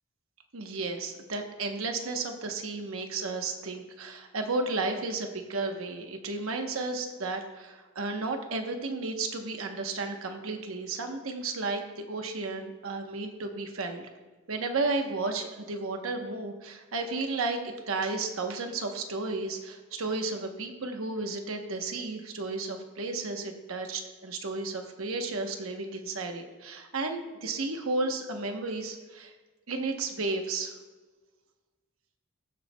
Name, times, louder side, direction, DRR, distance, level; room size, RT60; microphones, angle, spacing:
voice 1, 0.5-14.1 14.5-29.3 29.7-30.7, right 3 dB, 90° right, 4 dB, 1.0 m, -33 dB
20.0 x 7.1 x 2.3 m, 1.2 s
head